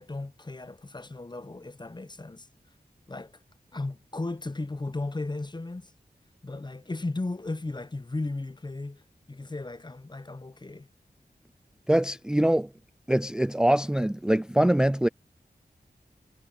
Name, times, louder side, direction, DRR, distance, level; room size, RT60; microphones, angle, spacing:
voice 1, 0.0-2.5 3.1-3.4 3.7-5.9 6.4-9.0 9.3-10.9, left 2 dB, 25° left, 0.7 m, -35 dB
voice 2, 11.9-12.7 13.1-15.1, right 1 dB, 5° right, 0.4 m, -23 dB
cardioid pair, 45°, 17 cm